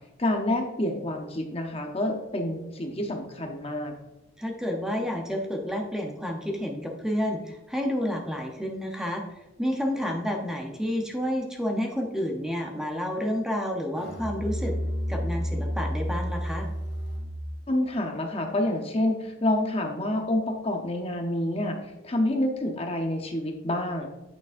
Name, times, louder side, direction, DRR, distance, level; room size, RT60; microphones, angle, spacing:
voice 1, 0.2-3.9 17.7-21.8 22.0-24.1, left 1 dB, 30° left, 3 dB, 0.7 m, -28 dB
voice 2, 4.4-9.2 9.6-14.7 15.1-16.7, equal, 5° right, 1 dB, 0.7 m, -30 dB
Musical instrument, 13.9-17.5, equal, 55° left, 1.8 m, -30 dB
9.2 x 5.9 x 2.5 m, 0.98 s
head